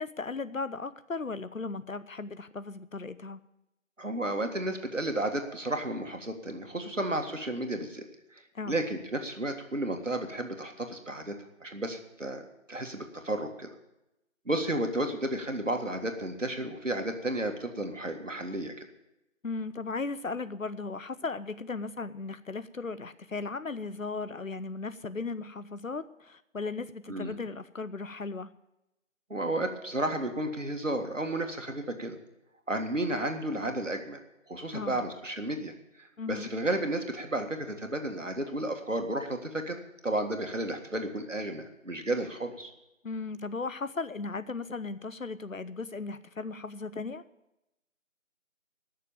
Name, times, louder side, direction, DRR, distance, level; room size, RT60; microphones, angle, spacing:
voice 1, 0.0-3.4 8.5-8.8 19.4-28.5 34.7-35.0 36.2-36.5 43.0-47.2, left 3 dB, 80° left, 13 dB, 0.9 m, -36 dB
voice 2, 4.0-8.0 8.3-13.7 14.4-18.9 27.1-27.3 29.3-32.1 32.7-34.2 34.5-35.7 36.0-42.7, right 1 dB, 70° right, 5 dB, 1.9 m, -32 dB
14.0 x 6.7 x 8.8 m, 0.90 s
figure-of-eight pair, 180°, 40 cm